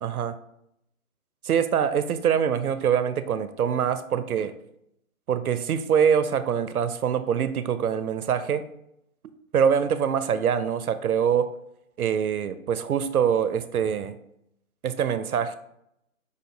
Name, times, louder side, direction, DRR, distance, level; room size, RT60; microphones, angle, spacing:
voice 1, 0.0-0.3 1.4-4.5 5.3-8.7 9.5-11.5 12.0-14.2 14.8-15.6, right 8 dB, 80° right, 12 dB, 0.6 m, -24 dB
5.3 x 2.6 x 3.8 m, 0.78 s
hypercardioid pair, 150°, 43 cm